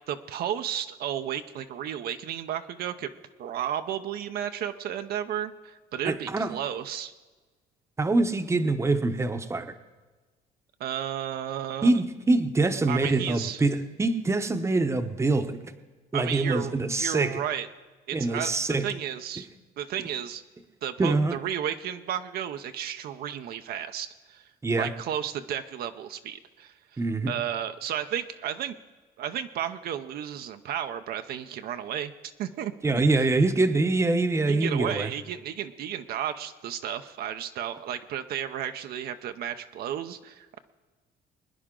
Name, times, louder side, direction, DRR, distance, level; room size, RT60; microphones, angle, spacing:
voice 1, 0.1-3.1 3.4-7.1 10.8-11.9 12.9-13.6 16.1-17.7 18.1-19.5 19.8-20.4 20.8-24.4 24.8-27.0 27.3-28.8 29.2-32.1 32.4-33.0 34.5-40.6, right 10 dB, 65° right, 8 dB, 0.6 m, -33 dB
voice 2, 6.0-6.5 8.0-9.7 11.8-15.6 16.1-17.4 18.1-18.9 21.0-21.4 24.6-24.9 27.0-27.3 32.8-35.1, right 2 dB, 15° right, 9 dB, 0.8 m, -24 dB
22.5 x 10.0 x 3.8 m, 1.3 s
cardioid pair, 110°, 17 cm